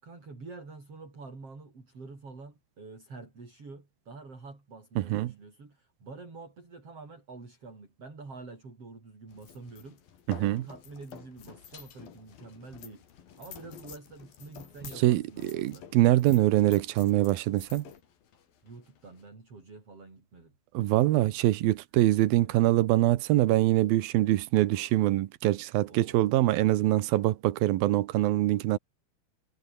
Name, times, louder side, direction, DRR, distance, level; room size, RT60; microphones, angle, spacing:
voice 1, 0.0-10.0 10.4-15.9 18.6-20.5 22.3-22.7 25.9-26.3, right 3 dB, 40° right, 7.2 m, -47 dB
voice 2, 5.0-5.3 10.3-10.6 15.0-17.9 20.7-28.8, right 15 dB, 85° right, 2.9 m, -24 dB
sound 1, 9.3-19.3, left 9 dB, 80° left, 4.4 m, -50 dB
omnidirectional pair, 4.1 m